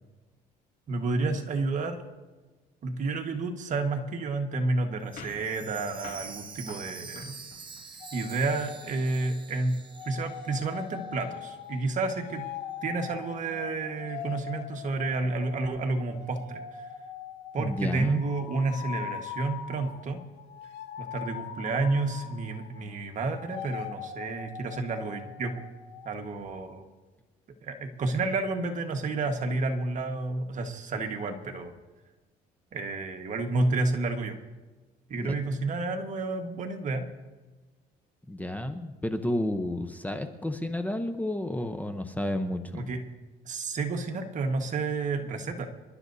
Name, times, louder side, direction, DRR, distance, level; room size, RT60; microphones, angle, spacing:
voice 1, 0.9-2.0 2.8-7.4 8.1-9.8 10.0-12.5 12.8-16.9 17.5-20.2 21.0-25.6 26.0-26.8 27.6-31.7 32.7-34.4 35.1-37.1 42.7-43.0 43.4-45.7, right 3 dB, 45° right, 4 dB, 1.5 m, -30 dB
Chime, 5.1-11.0 11.3-11.4 12.0-12.1, right 5 dB, 30° right, 1.2 m, -46 dB
sound 1, 5.2-8.0, left 5 dB, 60° left, 3.5 m, -48 dB
sound 2, 8.0-9.5 9.9-22.9 23.2-26.3, left 8 dB, 85° left, 1.2 m, -42 dB
voice 2, 17.6-18.2 35.2-35.4 38.3-42.9, left 1 dB, 10° left, 7 dB, 0.8 m, -31 dB
27.5 x 11.5 x 2.7 m, 1.3 s
cardioid pair, 110°, 17 cm